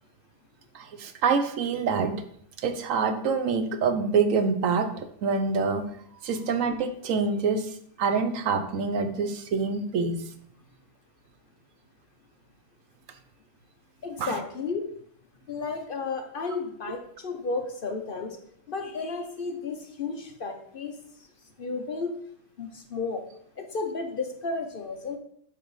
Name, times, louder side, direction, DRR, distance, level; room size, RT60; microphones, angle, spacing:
voice 1, 0.7-2.2 2.6-4.9 5.2-5.8 6.2-10.2 14.2-14.4, right 5 dB, 80° right, 8 dB, 1.1 m, -26 dB
voice 2, 14.0-14.9 15.5-18.4 18.7-20.9 21.6-22.1 22.6-23.2 23.6-25.2, left 4 dB, 50° left, 4 dB, 0.8 m, -33 dB
6.5 x 6.0 x 3.1 m, 0.66 s
omnidirectional pair, 1.3 m